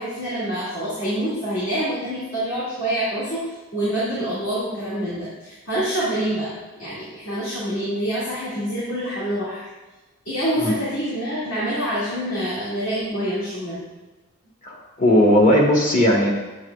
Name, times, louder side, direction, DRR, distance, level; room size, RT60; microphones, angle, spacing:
voice 1, 0.0-9.7 10.3-13.8, right 1 dB, 70° left, -10 dB, 2.1 m, -26 dB
voice 2, 14.6-16.3, left 1 dB, 40° left, -1 dB, 1.3 m, -17 dB
8.5 x 7.4 x 2.4 m, 1.1 s
head